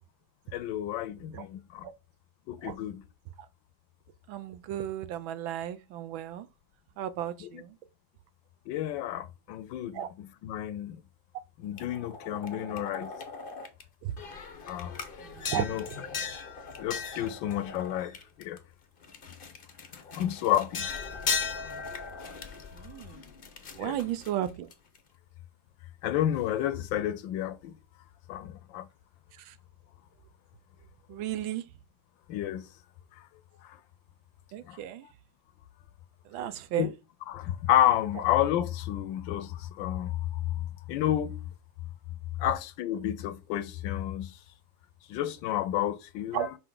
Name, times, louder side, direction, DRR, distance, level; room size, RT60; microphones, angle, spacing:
voice 1, 0.5-1.8 2.5-3.1 7.4-7.6 8.7-11.0 11.6-13.1 14.7-14.9 15.5-15.9 16.8-18.1 18.4-18.6 20.1-20.9 23.8-24.0 26.0-27.8 28.3-28.9 32.3-32.6 34.7-34.8 36.8-36.9 37.3-40.2 40.9-41.4 42.4-44.3 45.1-46.6, left 12 dB, 75° left, 1.3 m, -30 dB
voice 2, 4.3-6.5 7.0-7.7 9.9-10.1 14.0-14.1 15.3-15.7 22.8-23.2 23.8-24.7 31.1-31.6 34.5-35.0 36.3-36.9 46.3-46.5, right 11 dB, 80° right, 1.4 m, -34 dB
sound 1, 11.8-13.8 14.2-18.6 19.0-25.0, left 5 dB, 50° left, 0.6 m, -38 dB
5.6 x 5.2 x 3.8 m
omnidirectional pair, 2.2 m